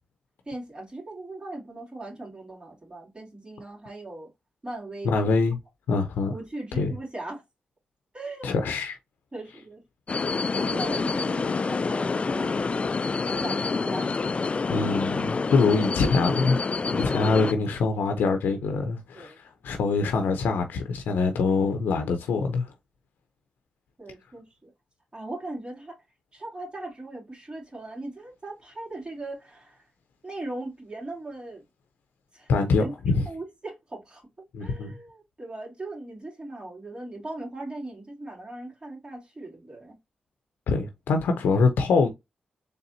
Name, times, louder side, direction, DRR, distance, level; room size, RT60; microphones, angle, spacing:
voice 1, 0.4-4.3 4.6-5.1 6.3-7.4 8.1-8.5 9.3-9.8 10.5-12.9 13.3-14.1 19.1-19.4 24.0-24.7 25.1-26.0 26.3-29.8 30.2-31.6 32.3-32.5 32.8-32.9 33.2-34.2 34.6-40.0, right 2 dB, 30° right, 2.8 m, -39 dB
voice 2, 5.0-5.6 5.9-6.3 6.8-6.9 8.4-9.0 14.7-16.6 16.9-22.7 32.5-33.2 34.5-34.9 40.7-42.1, left 4 dB, 90° left, 0.6 m, -24 dB
sound 1, 10.1-17.5, left 4 dB, 40° left, 0.3 m, -27 dB
4.1 x 3.4 x 2.6 m
cardioid pair, 60°, 3 cm